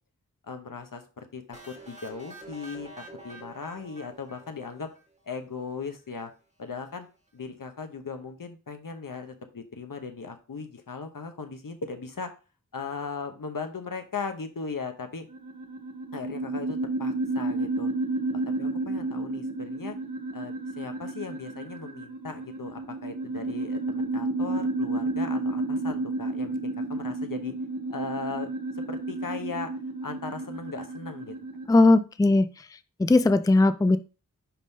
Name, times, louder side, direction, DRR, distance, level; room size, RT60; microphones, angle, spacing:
voice 1, 0.4-4.9 5.3-6.3 6.6-7.1 7.3-12.3 12.7-15.3 16.1-17.9 18.3-20.0 20.3-27.5 27.9-28.5 28.9-29.7 30.0-31.3, left 4 dB, 75° left, 6 dB, 0.9 m, -38 dB
sound 1, 1.5-5.3, right 2 dB, 20° right, 1.5 m, -47 dB
sound 2, 15.3-31.6, right 2 dB, 65° right, 1.6 m, -31 dB
voice 2, 31.7-32.5 33.0-34.0, left 2 dB, 10° left, 12 dB, 0.4 m, -19 dB
10.0 x 3.6 x 2.7 m, 0.33 s
wide cardioid pair, 45°, 33 cm